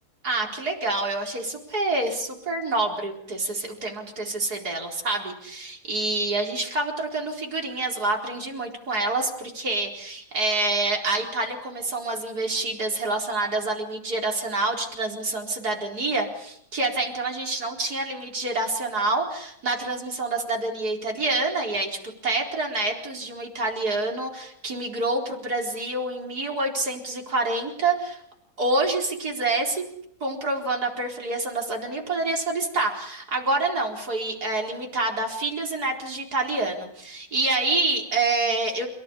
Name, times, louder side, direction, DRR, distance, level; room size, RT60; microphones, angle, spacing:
voice 1, 0.2-28.2 28.6-29.8 30.2-38.9, right 2 dB, 80° right, 1 dB, 5.0 m, -27 dB
29.5 x 17.5 x 10.0 m, 0.73 s
omnidirectional pair, 1.6 m